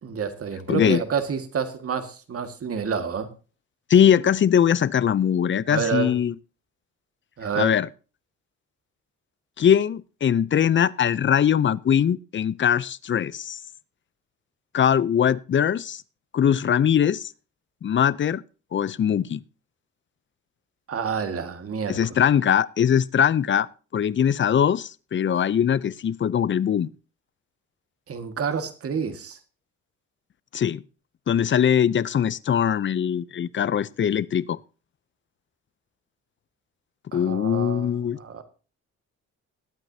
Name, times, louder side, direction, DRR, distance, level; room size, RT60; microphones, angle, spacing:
voice 1, 0.0-3.3 5.7-6.2 7.4-7.7 20.9-22.0 25.4-25.5 28.1-29.4 37.1-38.4, right 6 dB, 50° right, 1.8 m, -29 dB
voice 2, 0.7-1.0 3.9-6.3 7.5-7.9 9.6-13.6 14.7-16.0 16.3-17.3 17.8-18.4 18.7-19.4 21.9-23.7 23.9-26.9 30.5-30.8 31.3-34.6 37.1-38.2, left 9 dB, 40° left, 0.5 m, -21 dB
21.0 x 9.0 x 2.8 m
cardioid pair, 95°, 29 cm